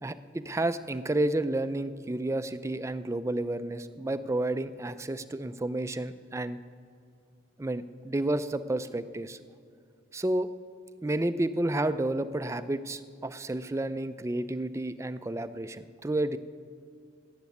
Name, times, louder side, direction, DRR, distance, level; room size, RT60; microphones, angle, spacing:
voice 1, 0.0-6.6 7.6-9.4 10.1-10.5 11.0-16.4, right 1 dB, 15° right, 13 dB, 0.4 m, -31 dB
14.0 x 8.1 x 9.4 m, 2.3 s
head